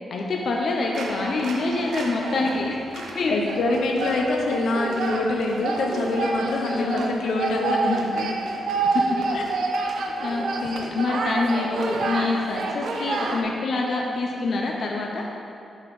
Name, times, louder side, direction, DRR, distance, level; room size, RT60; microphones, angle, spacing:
voice 1, 0.1-3.4 4.3-4.5 6.7-7.1 8.9-9.0 10.2-15.3, left 3 dB, 50° left, 0 dB, 0.6 m, -26 dB
sound 1, 0.9-13.4, right 3 dB, 75° right, 0.7 m, -28 dB
voice 2, 3.0-8.3 9.3-9.7, left 2 dB, 85° left, 1 dB, 0.8 m, -25 dB
7.3 x 4.3 x 4.8 m, 2.7 s
wide cardioid pair, 165°, 0 cm